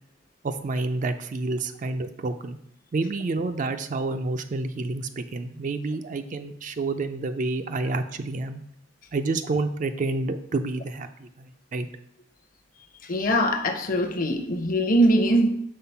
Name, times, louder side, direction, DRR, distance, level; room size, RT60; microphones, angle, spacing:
voice 1, 0.4-2.6 2.9-8.6 9.1-11.9, right 3 dB, 40° right, 8 dB, 0.4 m, -29 dB
voice 2, 13.0-15.5, right 1 dB, 45° left, 5 dB, 0.8 m, -22 dB
5.6 x 4.1 x 5.7 m, 0.72 s
head